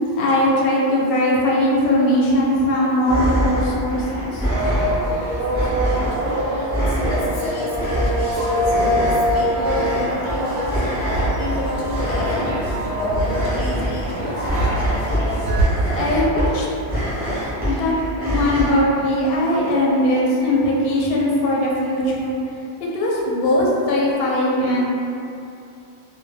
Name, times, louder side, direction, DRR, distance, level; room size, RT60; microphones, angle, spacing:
voice 1, 0.1-4.5 15.9-16.7 17.6-18.0 18.2-22.4 22.9-24.9, left 1 dB, 65° left, -4 dB, 0.7 m, -19 dB
sound 1, 3.0-18.7, equal, 10° right, 0.5 m, -25 dB
sound 2, 4.5-15.6, equal, 55° right, 0.7 m, -24 dB
voice 2, 5.7-6.4 6.7-14.4, left 2 dB, 90° left, -5 dB, 0.9 m, -30 dB
2.1 x 2.0 x 3.1 m, 2.6 s
omnidirectional pair, 1.2 m